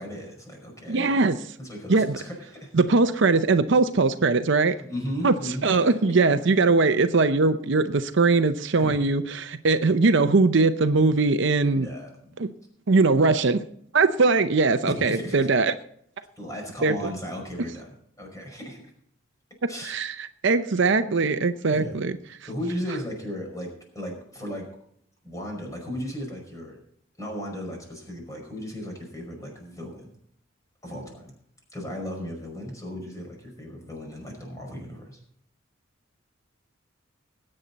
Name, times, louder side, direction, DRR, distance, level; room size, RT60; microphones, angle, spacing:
voice 1, 0.0-1.2 1.6-2.7 4.8-6.1 8.8-9.0 11.7-12.4 14.8-15.5 16.4-18.8 19.7-20.0 21.6-22.0 22.4-23.7 23.9-24.7 25.2-26.8 27.2-30.1 30.8-31.3 31.7-35.2, equal, 15° left, 1 dB, 5.3 m, -35 dB
voice 2, 0.9-1.4 1.9-2.2 2.7-4.8 5.2-5.3 5.6-11.9 12.4-12.5 12.9-13.6 13.9-15.7 16.8-17.0 19.9-22.1, right 3 dB, 60° right, 10 dB, 0.6 m, -21 dB
20.0 x 8.9 x 4.1 m, 0.67 s
head